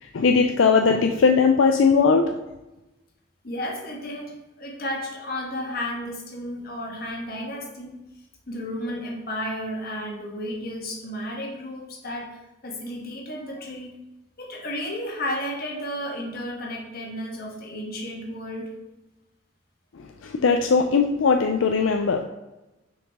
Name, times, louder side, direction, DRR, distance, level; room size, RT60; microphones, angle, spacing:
voice 1, 0.0-2.3 20.0-22.2, left 5 dB, 80° left, 4 dB, 0.4 m, -19 dB
voice 2, 3.4-8.0 8.5-12.3 12.6-13.9 14.4-18.7, left 1 dB, 50° left, 0 dB, 1.4 m, -33 dB
6.1 x 4.9 x 3.6 m, 1.0 s
head